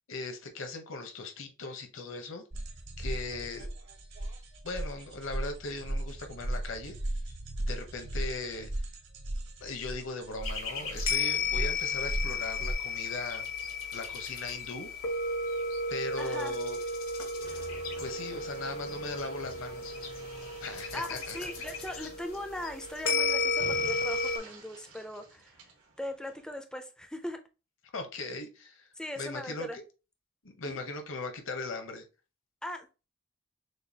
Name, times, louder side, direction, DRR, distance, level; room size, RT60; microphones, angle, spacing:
voice 1, 0.1-2.4 3.0-3.7 4.6-6.9 7.6-8.7 9.6-13.5 13.9-14.9 15.9-16.8 18.0-19.9 20.6-21.4 22.0-22.1 27.9-28.9 29.2-29.8 30.4-32.0, left 3 dB, 65° left, 0.8 m, -39 dB
sound 1, 2.5-12.7, right 1 dB, 55° right, 0.9 m, -37 dB
sound 2, 10.4-24.4, left 3 dB, 90° left, 1.1 m, -33 dB
voice 2, 16.2-16.6 20.9-25.6 26.0-27.4 29.0-29.8 30.6-30.8 32.6-32.9, left 1 dB, 5° left, 0.4 m, -39 dB
sound 3, 17.4-26.5, right 2 dB, 90° right, 1.3 m, -50 dB
6.4 x 2.3 x 2.7 m
head